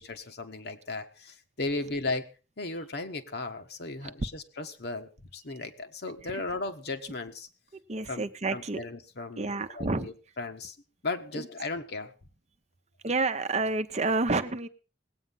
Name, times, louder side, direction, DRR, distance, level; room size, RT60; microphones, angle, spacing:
voice 1, 0.0-2.3 2.6-7.5 8.1-8.2 8.5-10.8 11.0-12.1, left 3 dB, 65° left, 6 dB, 1.5 m, -36 dB
voice 2, 7.9-8.8 9.4-10.1 11.3-11.4 13.0-14.7, right 3 dB, 40° right, 10 dB, 0.8 m, -29 dB
19.0 x 8.8 x 5.6 m, 0.35 s
head